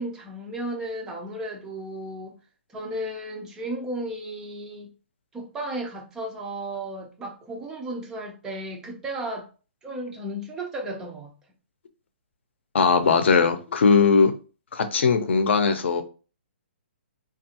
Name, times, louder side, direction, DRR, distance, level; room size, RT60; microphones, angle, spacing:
voice 1, 0.0-2.4 2.7-4.9 5.3-9.5 9.8-11.3, right 1 dB, 10° right, 0.3 m, -34 dB
voice 2, 12.7-14.3 14.7-16.0, left 5 dB, 65° left, 0.6 m, -19 dB
3.4 x 2.4 x 2.7 m
hypercardioid pair, 170°, 7 cm